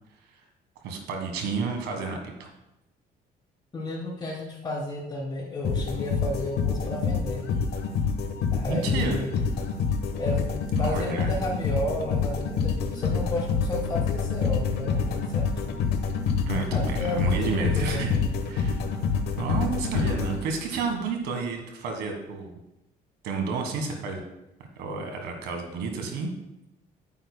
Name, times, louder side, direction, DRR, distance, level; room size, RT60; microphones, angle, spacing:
voice 1, 0.8-2.5 8.7-9.2 10.7-11.3 16.5-18.1 18.5-18.8 19.4-22.5 23.2-24.2 24.8-26.3, right 4 dB, 85° right, 4 dB, 1.5 m, -30 dB
voice 2, 3.7-7.4 8.5-9.3 10.2-15.7 16.5-18.2, left 1 dB, 25° left, -5 dB, 3.2 m, -33 dB
sound 1, 5.6-20.9, left 5 dB, 75° left, 1.1 m, -27 dB
10.5 x 9.2 x 2.2 m, 0.89 s
cardioid pair, 110°, 17 cm